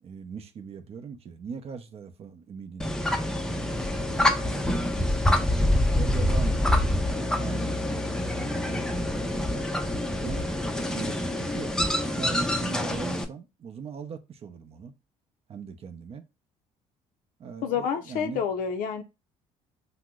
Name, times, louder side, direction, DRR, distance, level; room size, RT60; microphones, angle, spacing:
voice 1, 0.0-2.9 3.4-6.8 7.1-8.8 9.2-9.7 10.0-10.5 10.8-11.7 12.1-14.9 15.5-16.3 17.4-18.4, right 6 dB, 45° right, 0.6 m, -40 dB
sound 1, 2.8-13.2, left 1 dB, 5° left, 0.4 m, -26 dB
voice 2, 17.6-19.0, left 7 dB, 75° left, 0.4 m, -28 dB
2.8 x 2.0 x 3.5 m
supercardioid pair, 85°, 14 cm